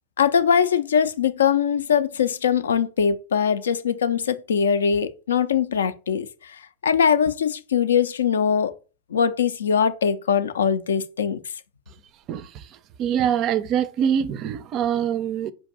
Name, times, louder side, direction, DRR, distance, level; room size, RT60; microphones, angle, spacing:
voice 1, 0.2-6.3 6.8-8.7 9.1-11.4, left 7 dB, 80° left, 0.4 m, -21 dB
voice 2, 13.0-15.5, right 9 dB, 40° right, 0.4 m, -24 dB
4.5 x 2.6 x 3.8 m
hypercardioid pair, 95°, 0 cm